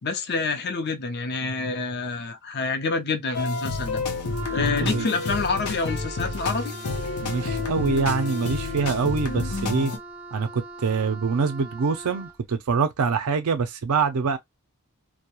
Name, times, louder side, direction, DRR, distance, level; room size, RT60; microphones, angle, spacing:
voice 1, 0.0-4.0 4.5-6.7, left 4 dB, 50° left, 0.5 m, -27 dB
sound 1, 3.3-10.0, left 3 dB, 85° left, 0.7 m, -29 dB
Wind instrument woodwind instrument, 4.3-12.4, right 3 dB, 10° right, 0.5 m, -41 dB
voice 2, 4.6-5.1 7.2-9.9 10.3-14.4, right 5 dB, 80° right, 0.5 m, -25 dB
2.3 x 2.1 x 2.9 m
head